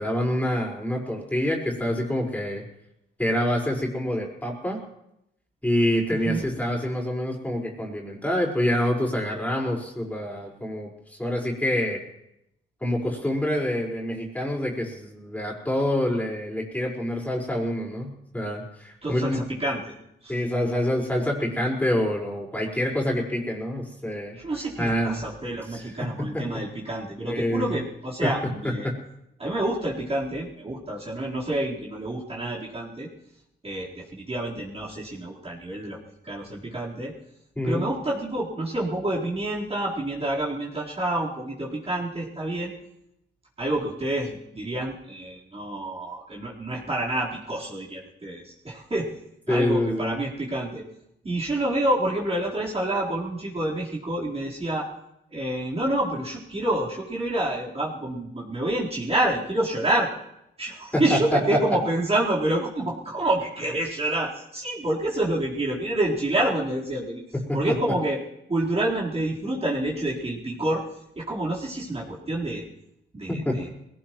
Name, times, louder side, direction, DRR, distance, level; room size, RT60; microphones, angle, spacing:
voice 1, 0.0-2.6 3.2-4.8 5.6-12.0 12.8-19.4 20.3-24.3 24.8-25.2 25.7-26.6 27.2-27.8 28.2-28.3 28.8-29.0 37.5-37.8 49.5-50.2 60.9-61.6 67.3-67.7 73.3-73.7, left 1 dB, 5° left, -2 dB, 5.1 m, -26 dB
voice 2, 6.1-6.5 19.0-19.8 20.2-20.4 24.4-28.9 29.4-33.1 33.6-36.0 36.2-37.1 37.6-42.7 43.6-49.1 49.5-50.8 51.2-54.9 55.3-60.1 60.6-67.2 67.5-68.2 68.5-70.8 71.2-72.6 73.1-73.7, right 1 dB, 30° right, -6 dB, 4.2 m, -28 dB
21.0 x 18.0 x 3.2 m, 0.81 s
cardioid pair, 70°, 21 cm